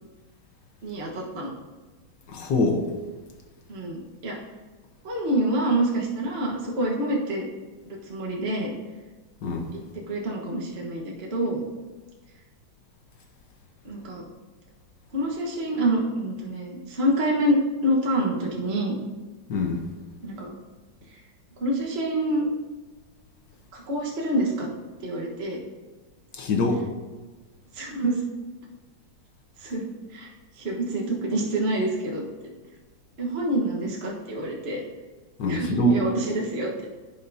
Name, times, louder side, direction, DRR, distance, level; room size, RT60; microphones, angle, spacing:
voice 1, 0.8-1.5 3.7-4.4 5.0-7.5 7.8-8.7 9.7-11.6 13.8-14.2 15.1-18.9 20.2-20.5 21.1-21.2 21.6-22.5 23.7-24.7 25.0-25.6 27.7-28.2 29.6-29.8 30.1-32.2 33.2-34.8 35.4-36.9, right 1 dB, 35° right, -2 dB, 1.3 m, -27 dB
voice 2, 2.3-2.8 9.4-9.7 19.5-19.8 26.3-26.9 35.4-36.0, left 2 dB, 60° left, 3 dB, 1.5 m, -24 dB
14.5 x 5.7 x 2.7 m, 1.3 s
omnidirectional pair, 2.2 m